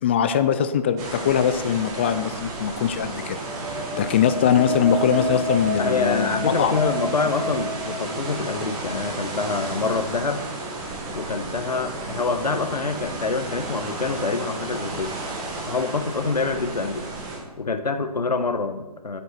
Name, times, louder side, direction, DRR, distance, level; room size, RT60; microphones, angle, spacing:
voice 1, 0.0-3.4 4.0-6.8, left 8 dB, 15° left, 10 dB, 0.4 m, -22 dB
sound 1, 1.0-17.4, right 2 dB, 20° right, 2.1 m, -33 dB
sound 2, 3.2-9.0, equal, 5° right, 3.5 m, -31 dB
voice 2, 5.8-10.4 11.1-15.1 15.7-17.0 17.6-19.2, left 4 dB, 75° left, 8 dB, 1.5 m, -26 dB
21.0 x 8.1 x 4.4 m, 1.1 s
figure-of-eight pair, 145°, 21 cm